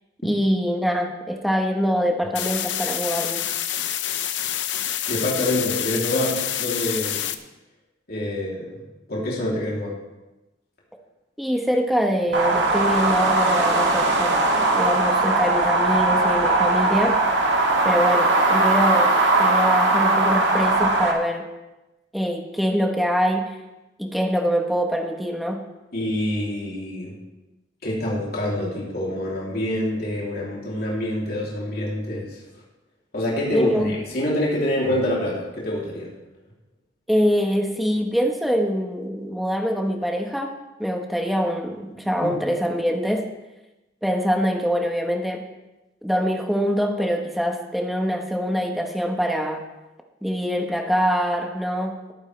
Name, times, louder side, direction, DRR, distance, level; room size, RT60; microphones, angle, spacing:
voice 1, 0.2-3.4 11.4-17.2 17.8-21.5 22.1-23.6 24.0-25.6 33.5-33.9 37.1-40.5 40.8-43.3 44.0-45.5 46.0-49.6 50.2-52.1, equal, ahead, 2 dB, 1.3 m, -24 dB
sound 1, 2.3-7.3, left 11 dB, 85° left, 0.7 m, -27 dB
voice 2, 5.1-7.3 8.1-8.8 9.1-9.9 25.9-27.1 27.8-32.4 33.1-36.1 42.2-42.3, left 1 dB, 55° left, -5 dB, 3.2 m, -26 dB
sound 2, 12.3-21.1, right 2 dB, 75° right, 1.9 m, -19 dB
19.0 x 9.3 x 3.4 m, 1.0 s
head